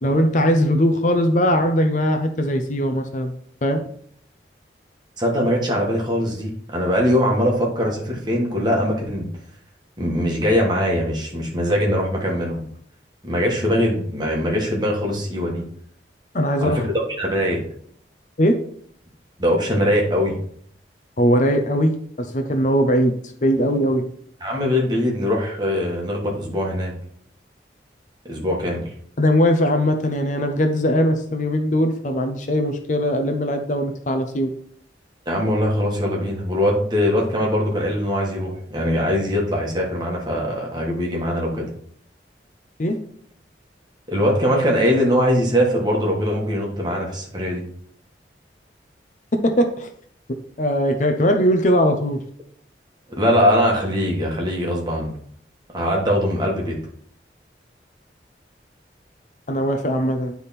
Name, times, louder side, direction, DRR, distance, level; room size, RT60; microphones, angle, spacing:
voice 1, 0.0-3.3 3.6-3.8 16.3-16.8 18.4-18.6 21.2-23.1 23.4-24.0 29.2-34.5 42.8-43.0 49.4-49.9 50.6-52.2 59.5-60.3, equal, 45° left, 6 dB, 0.6 m, -20 dB
voice 2, 5.2-9.3 10.0-12.6 13.2-15.6 16.6-16.9 17.2-17.6 19.4-20.4 24.4-26.9 28.2-28.8 35.2-41.7 44.1-47.6 53.1-55.1 55.7-56.8, equal, 25° right, -2 dB, 1.5 m, -21 dB
9.5 x 3.5 x 4.2 m, 0.62 s
head